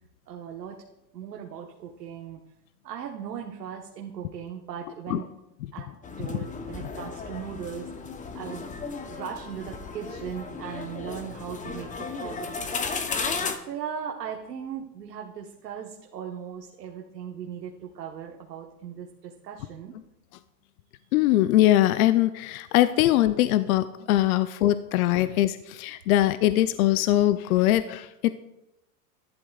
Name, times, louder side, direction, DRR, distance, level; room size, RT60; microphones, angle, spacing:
voice 1, 0.3-0.8 1.1-2.4 2.8-5.3 5.7-5.9 6.2-7.9 8.3-8.7 9.1-13.4 13.6-20.0 26.1-26.2, right 8 dB, 85° right, 1 dB, 1.2 m, -38 dB
sound 1, 6.0-13.6, left 4 dB, 15° left, 0.8 m, -34 dB
voice 2, 21.1-28.3, left 14 dB, 60° left, 13 dB, 0.6 m, -22 dB
14.0 x 11.5 x 2.3 m, 0.90 s
hypercardioid pair, 110°, 48 cm